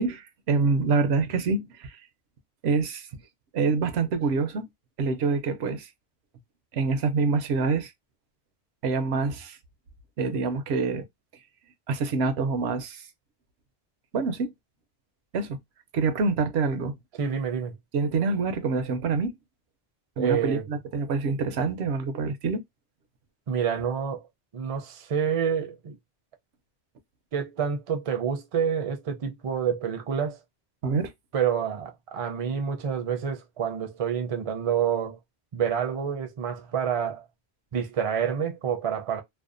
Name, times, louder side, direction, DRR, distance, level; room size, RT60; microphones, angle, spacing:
voice 1, 0.0-2.0 2.6-3.2 3.5-4.7 5.0-5.9 6.7-7.9 8.8-9.6 10.2-11.0 11.9-13.0 14.1-14.5 15.3-15.6 15.9-17.0 17.9-19.3 20.2-22.6 30.8-31.1, right 4 dB, 80° right, 0.8 m, -26 dB
voice 2, 17.2-17.8 20.2-20.6 23.5-24.2 24.5-26.0 27.3-30.4 31.3-35.2 35.5-37.2 37.7-39.2, right 8 dB, 40° right, 0.5 m, -28 dB
2.6 x 2.1 x 2.4 m
omnidirectional pair, 1.1 m